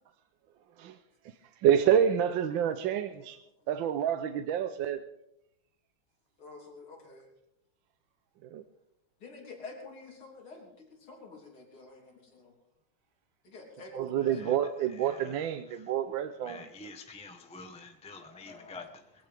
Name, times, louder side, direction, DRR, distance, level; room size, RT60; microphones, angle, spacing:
voice 1, 1.6-3.4 3.7-5.0 8.5-8.6 14.0-16.6, right 9 dB, 75° right, 1.4 m, -28 dB
voice 2, 2.7-3.3 6.4-7.3 9.2-12.5 13.4-14.6 18.2-19.1, left 3 dB, 90° left, 4.3 m, -49 dB
voice 3, 16.4-18.8, left 3 dB, 5° left, 0.5 m, -47 dB
22.0 x 16.0 x 3.5 m
omnidirectional pair, 2.3 m